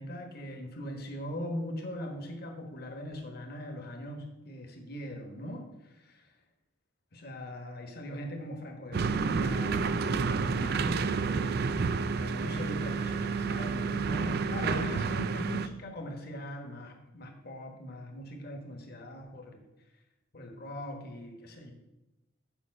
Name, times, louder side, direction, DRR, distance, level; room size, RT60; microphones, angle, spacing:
voice 1, 0.0-6.3 7.1-11.7 12.2-19.6 20.3-21.7, left 1 dB, 50° left, 3 dB, 1.3 m, -41 dB
sound 1, 8.9-15.7, right 5 dB, 50° right, 0.4 m, -30 dB
7.1 x 5.1 x 6.4 m, 0.97 s
head